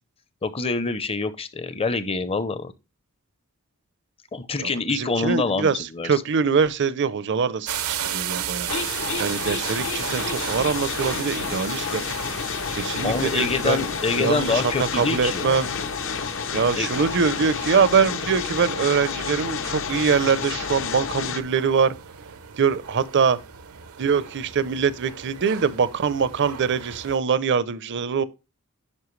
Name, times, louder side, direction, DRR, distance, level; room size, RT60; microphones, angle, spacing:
voice 1, 0.4-2.7 4.3-6.1 13.0-15.6 16.7-16.9, left 4 dB, 25° left, 0.6 m, -26 dB
voice 2, 4.6-8.7 9.2-12.0 12.7-13.9 14.1-15.7 16.5-21.9 22.6-23.4 24.0-28.2, right 6 dB, 55° right, 0.6 m, -23 dB
sound 1, 7.7-27.2, right 9 dB, 85° right, 0.8 m, -36 dB
sound 2, 8.7-21.4, left 6 dB, 60° left, 0.7 m, -30 dB
9.7 x 5.4 x 3.1 m
head